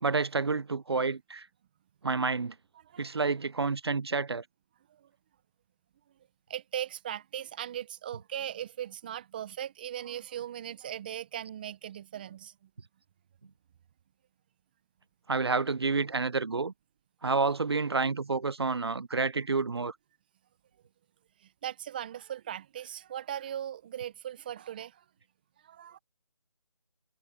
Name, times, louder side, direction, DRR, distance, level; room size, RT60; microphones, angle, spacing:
voice 1, 0.0-1.5 2.0-2.5 3.0-4.4 15.3-16.7 17.2-19.9, right 4 dB, 45° right, 0.7 m, -29 dB
voice 2, 6.5-12.5 21.6-25.0 25.6-26.0, right 10 dB, 15° right, 1.2 m, -39 dB
figure-of-eight pair, 165°, 19 cm